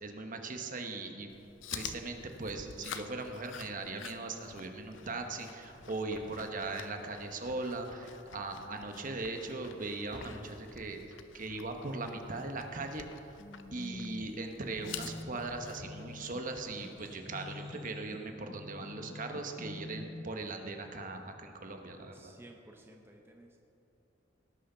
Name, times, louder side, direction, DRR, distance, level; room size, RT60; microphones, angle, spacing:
voice 1, 0.0-1.3 1.7-11.0 11.3-13.1 13.7-22.1, right 3 dB, 45° right, 4 dB, 1.1 m, -39 dB
Chewing mastication, 1.3-17.2, left 8 dB, 75° left, 0.6 m, -49 dB
sound 1, 9.6-11.0 15.0-18.3, right 1 dB, 65° right, 2.9 m, -56 dB
sound 2, 13.4-20.2, left 2 dB, 30° left, 0.4 m, -47 dB
voice 2, 22.1-23.6, right 1 dB, 10° right, 1 dB, 0.7 m, -55 dB
18.5 x 6.5 x 5.6 m, 2.8 s
head